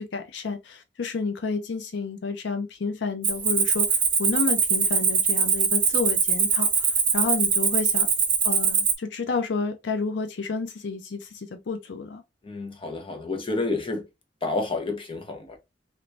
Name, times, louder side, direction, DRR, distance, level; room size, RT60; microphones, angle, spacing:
voice 1, 0.0-8.1 8.4-12.2, left 4 dB, 75° left, 0.5 m, -30 dB
Cricket, 3.2-8.9, right 6 dB, 30° right, 0.8 m, -22 dB
voice 2, 12.4-14.0 14.4-15.6, left 3 dB, 30° left, 0.8 m, -29 dB
3.2 x 2.9 x 2.7 m
head